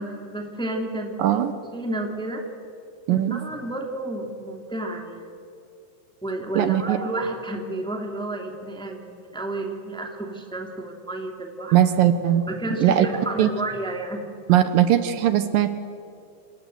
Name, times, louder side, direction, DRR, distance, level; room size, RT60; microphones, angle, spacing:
voice 1, 0.0-1.3 1.7-2.4 3.1-5.3 6.2-11.8 12.5-14.3, right 1 dB, ahead, 2 dB, 2.2 m, -31 dB
voice 2, 1.2-1.5 3.1-3.4 6.5-7.0 11.7-12.4 12.8-13.1 13.4-13.5 14.5-15.8, right 11 dB, 75° right, 11 dB, 2.5 m, -19 dB
28.0 x 26.5 x 7.9 m, 2.5 s
omnidirectional pair, 4.3 m